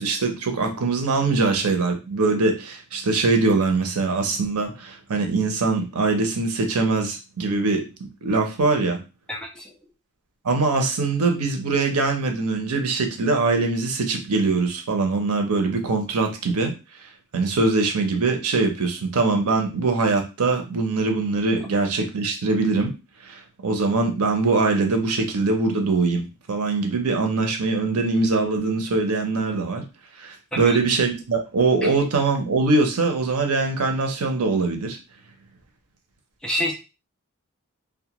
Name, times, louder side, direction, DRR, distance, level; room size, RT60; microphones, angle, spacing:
voice 1, 0.0-9.0 10.4-16.7 17.3-22.9 23.2-29.9 30.2-35.0, right 3 dB, 90° right, 5 dB, 0.6 m, -22 dB
voice 2, 9.3-9.7 30.5-30.8 31.8-31.9 36.4-36.7, equal, 5° left, -1 dB, 0.4 m, -27 dB
2.2 x 2.1 x 2.8 m, 0.29 s
head